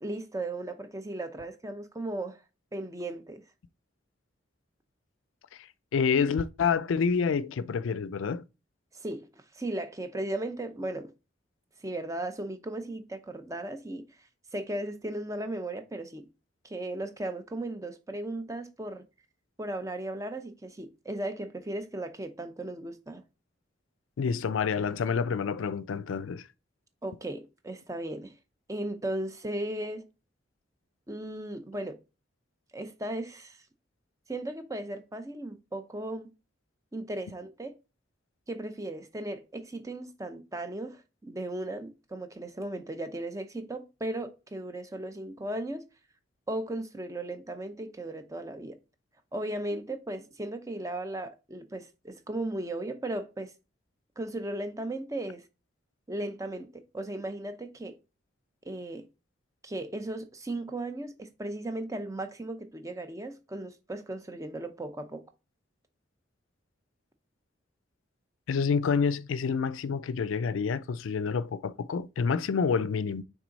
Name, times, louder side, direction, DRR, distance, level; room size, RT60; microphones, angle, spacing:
voice 1, 0.0-2.4 2.7-3.4 8.9-9.3 9.5-11.1 11.8-14.0 14.5-16.3 16.6-19.0 19.6-23.2 27.0-28.3 28.7-30.0 31.1-32.0 32.7-33.6 34.3-36.3 36.9-37.7 38.5-45.8 46.5-48.8 49.3-53.5 54.2-55.4 56.1-58.0 58.6-59.1 59.6-65.2, right 1 dB, 15° right, 0.6 m, -36 dB
voice 2, 5.6-8.4 24.2-26.5 68.5-73.2, left 5 dB, 90° left, 0.4 m, -28 dB
6.1 x 3.9 x 4.0 m
head